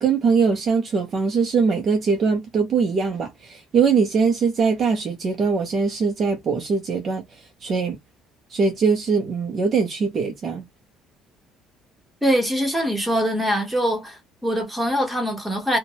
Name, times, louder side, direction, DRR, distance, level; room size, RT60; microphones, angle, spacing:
voice 1, 0.0-7.2 7.6-8.0 8.5-10.6, right 5 dB, 30° right, 0.5 m, -21 dB
voice 2, 12.2-15.8, equal, ahead, 1.0 m, -23 dB
2.7 x 2.2 x 2.8 m
cardioid pair, 180°, 0 cm